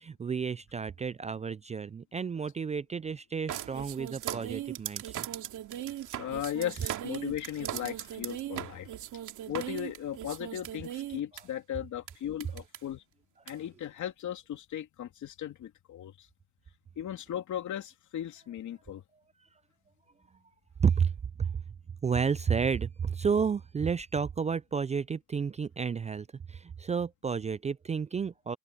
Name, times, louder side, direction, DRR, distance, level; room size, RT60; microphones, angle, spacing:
voice 1, 0.0-5.3 20.8-21.1 21.4-21.5 22.0-28.6, right 6 dB, 25° right, 0.3 m, -31 dB
sound 1, 3.5-11.4 12.1-12.2 12.4-12.8 13.5-13.6, right 12 dB, 80° right, 2.6 m, -38 dB
voice 2, 6.2-8.9 9.5-13.0 13.5-16.3 17.0-19.0, left 11 dB, 70° left, 3.0 m, -37 dB
open air
cardioid pair, 90°, 30 cm